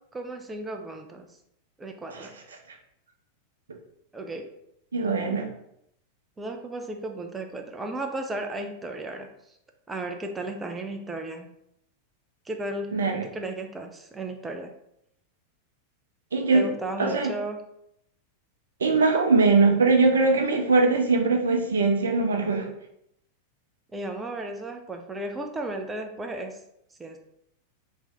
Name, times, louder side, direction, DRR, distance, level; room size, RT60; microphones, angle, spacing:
voice 1, 0.1-1.3 1.8-2.3 4.1-4.5 6.4-9.3 9.9-11.5 12.5-14.7 16.5-17.6 23.9-26.6 27.0-27.2, right 1 dB, 10° right, 4 dB, 0.3 m, -34 dB
voice 2, 4.9-5.5 12.9-13.2 16.3-16.7 17.0-17.3 18.8-22.7, right 3 dB, 70° right, 3 dB, 0.5 m, -21 dB
2.9 x 2.6 x 3.4 m, 0.77 s
figure-of-eight pair, 90°, 0 cm